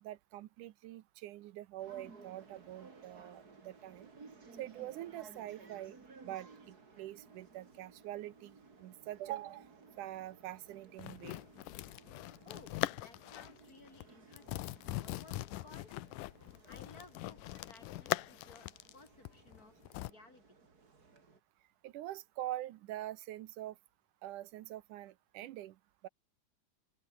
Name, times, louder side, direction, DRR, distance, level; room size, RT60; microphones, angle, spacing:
voice 1, 0.0-4.1 4.6-6.0 6.2-9.7 10.0-11.4 21.8-23.8 24.2-25.8 26.0-26.1, right 14 dB, 80° right, 2.4 m, -44 dB
sound 1, 1.8-21.4, right 4 dB, 30° right, 3.2 m, -58 dB
sound 2, 11.0-13.6 13.9-14.1 14.3-20.1, left 17 dB, 80° left, 2.3 m, -41 dB
voice 2, 12.4-15.9 16.7-20.7, left 3 dB, 30° left, 2.8 m, -59 dB
open air
omnidirectional pair, 3.7 m